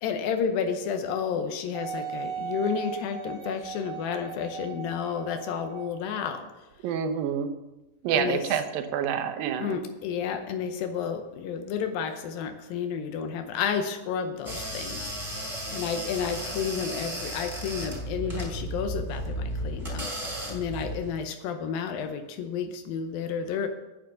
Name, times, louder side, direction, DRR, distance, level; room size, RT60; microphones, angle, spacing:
voice 1, 0.0-6.4 8.1-8.4 9.6-15.1 15.7-23.7, left 7 dB, 80° left, 7 dB, 2.5 m, -31 dB
Wind instrument woodwind instrument, 1.7-6.1 6.7-6.8, right 7 dB, 60° right, 3.8 m, -37 dB
voice 2, 6.8-7.5 8.0-9.8, right 8 dB, 80° right, 7 dB, 2.6 m, -28 dB
sound 1, 14.4-21.1, equal, 10° right, 3.7 m, -34 dB
9.3 x 7.5 x 6.8 m, 1.0 s
omnidirectional pair, 4.2 m